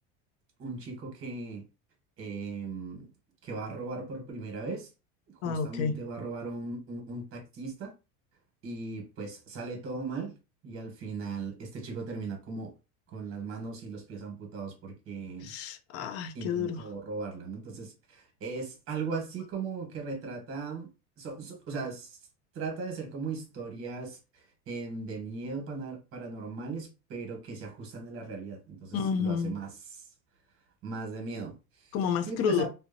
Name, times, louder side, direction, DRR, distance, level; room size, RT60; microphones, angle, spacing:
voice 1, 0.6-1.6 2.2-3.1 3.4-4.9 5.4-7.9 8.6-10.4 10.6-12.7 13.1-15.5 16.3-20.9 21.2-22.2 22.5-30.1 30.8-31.9 32.3-32.7, right 4 dB, 40° right, 1.1 m, -38 dB
voice 2, 5.4-5.9 15.4-16.8 28.9-29.6 31.9-32.7, left 7 dB, 45° left, 0.4 m, -30 dB
2.6 x 2.1 x 2.5 m
supercardioid pair, 135°, 34 cm